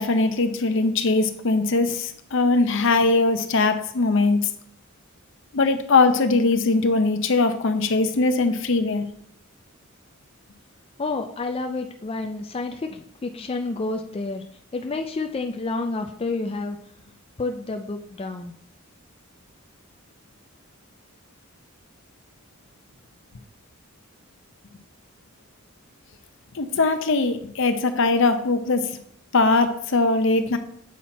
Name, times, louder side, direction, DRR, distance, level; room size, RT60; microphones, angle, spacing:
voice 1, 0.0-4.4 5.5-9.1 26.5-28.9 29.3-30.6, left 3 dB, 65° left, 8 dB, 0.7 m, -21 dB
voice 2, 11.0-14.4 14.7-16.8 17.4-18.5, left 3 dB, 25° left, 5 dB, 0.4 m, -29 dB
7.3 x 4.3 x 4.2 m, 0.65 s
head